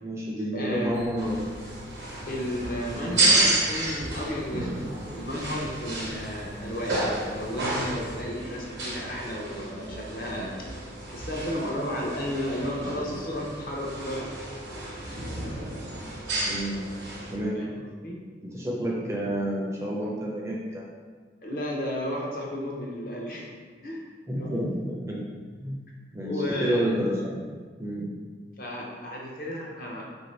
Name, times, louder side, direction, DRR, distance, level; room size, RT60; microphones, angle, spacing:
voice 1, 0.0-1.4 3.0-3.2 16.4-16.8 17.3-17.6 18.4-20.8 24.3-25.2 25.6-25.8 26.1-27.4 27.8-28.1, equal, 15° right, -4 dB, 0.4 m, -29 dB
voice 2, 0.5-0.9 2.3-10.5 11.1-14.3 17.5-18.2 21.4-23.5 23.8-24.0 24.4-24.7 26.2-26.9 28.6-30.0, equal, 50° left, -3 dB, 0.6 m, -33 dB
sound 1, 0.7-8.2, equal, 65° left, 1.1 m, -46 dB
sound 2, 1.2-17.3, right 2 dB, 85° right, 0.8 m, -31 dB
2.9 x 2.6 x 3.1 m, 1.5 s
head